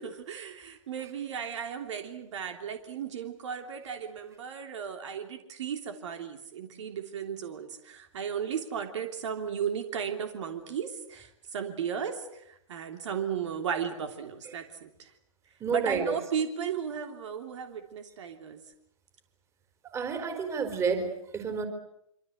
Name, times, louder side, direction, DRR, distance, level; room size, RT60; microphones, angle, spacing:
voice 1, 0.0-15.1 15.7-18.6, right 7 dB, 60° right, 6 dB, 3.3 m, -35 dB
voice 2, 15.6-16.2 19.8-21.7, right 5 dB, 15° right, 6 dB, 4.3 m, -30 dB
25.5 x 25.5 x 8.0 m, 0.77 s
hypercardioid pair, 140°, 18 cm